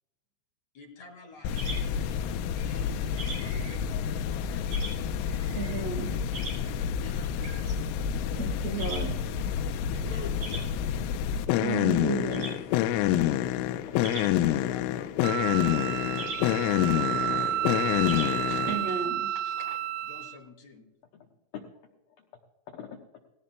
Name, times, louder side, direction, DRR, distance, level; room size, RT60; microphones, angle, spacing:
voice 1, 0.7-1.5 3.0-4.8 7.0-7.3 9.9-10.7 14.3-16.0 16.3-17.7 20.0-20.9, left 3 dB, 50° left, 2 dB, 2.7 m, -49 dB
sound 1, 1.3-19.0, right 2 dB, 40° right, 6.5 m, -44 dB
sound 2, 1.4-18.8, left 10 dB, 90° left, 3.2 m, -28 dB
voice 2, 5.5-6.2 6.6-6.9 8.4-10.2 11.6-12.5 13.1-13.3 18.5-19.8, right 5 dB, 70° right, 3 dB, 1.6 m, -35 dB
voice 3, 8.2-8.6 11.7-12.6 13.8-13.9 21.1-21.9 22.2-22.3 22.7-23.0, left 7 dB, 75° left, 1 dB, 2.2 m, -44 dB
Wind instrument woodwind instrument, 15.2-20.4, right 11 dB, 85° right, 3.5 m, -31 dB
19.0 x 17.5 x 2.2 m, 1.0 s
omnidirectional pair, 5.5 m